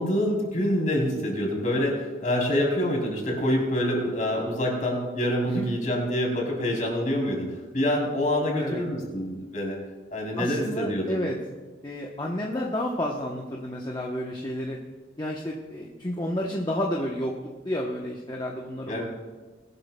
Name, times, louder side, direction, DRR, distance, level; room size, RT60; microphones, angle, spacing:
voice 1, 0.0-9.8 10.1-11.2 18.9-19.0, equal, 45° left, -1 dB, 3.5 m, -26 dB
voice 2, 10.4-11.4 11.8-14.8 15.2-19.0, left 1 dB, 25° left, -2 dB, 0.8 m, -31 dB
20.5 x 12.0 x 2.2 m, 1.3 s
head